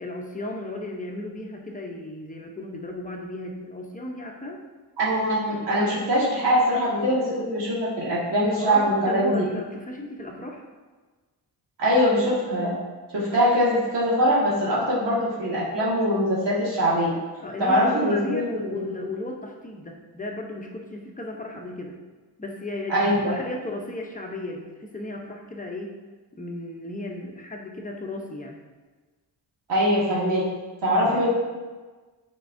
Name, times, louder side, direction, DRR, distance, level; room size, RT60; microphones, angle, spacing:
voice 1, 0.0-4.6 8.5-10.6 17.4-22.0 22.4-26.0 26.4-28.6, left 1 dB, 20° left, 0 dB, 0.7 m, -35 dB
voice 2, 5.0-9.4 11.8-12.8 13.1-17.1 17.6-18.8 22.9-23.4 29.7-30.5 30.8-31.3, equal, 80° right, -7 dB, 1.9 m, -22 dB
9.1 x 4.6 x 2.6 m, 1.3 s
wide cardioid pair, 135°, 41 cm